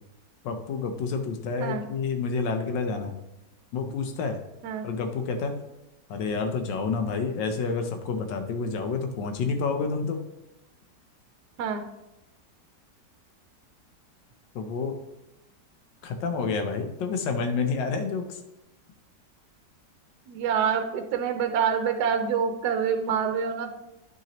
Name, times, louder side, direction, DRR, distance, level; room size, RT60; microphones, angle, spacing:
voice 1, 0.4-3.2 3.7-4.4 4.8-5.5 6.1-10.2 14.5-14.9 16.0-18.4, left 4 dB, 85° left, 6 dB, 1.4 m, -29 dB
voice 2, 20.3-23.7, right 7 dB, 70° right, 6 dB, 1.2 m, -26 dB
10.5 x 5.9 x 3.0 m, 0.95 s
omnidirectional pair, 1.9 m